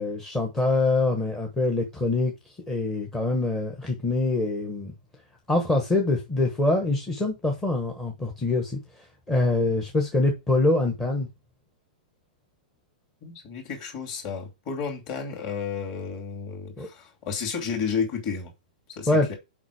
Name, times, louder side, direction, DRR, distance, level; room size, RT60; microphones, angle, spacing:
voice 1, 0.0-2.3 2.7-4.9 5.5-8.8 9.3-11.3 16.8-16.9 19.1-19.3, left 2 dB, 10° left, 1.2 m, -24 dB
voice 2, 13.2-18.5 19.0-19.4, left 6 dB, 30° left, 2.7 m, -32 dB
7.2 x 5.1 x 4.8 m
hypercardioid pair, 170°, 5 cm